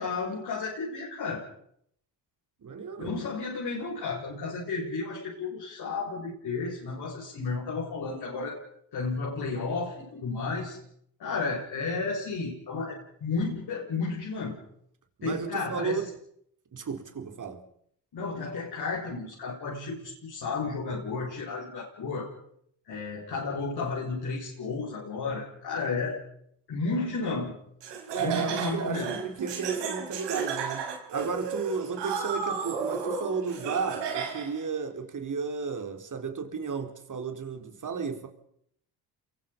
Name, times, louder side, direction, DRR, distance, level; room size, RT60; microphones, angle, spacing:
voice 1, 0.0-1.4 3.0-8.6 8.9-10.8 11.2-14.6 15.2-16.1 18.1-22.3 22.9-26.2 26.7-27.5 28.2-29.2, left 4 dB, 60° left, 7.7 m, -32 dB
voice 2, 2.6-3.1 15.2-16.0 16.7-17.7 28.1-38.3, right 5 dB, 45° right, 4.4 m, -33 dB
Laughter, 27.8-34.6, right 6 dB, 80° right, 4.8 m, -33 dB
28.5 x 23.0 x 5.5 m
supercardioid pair, 60°, 42 cm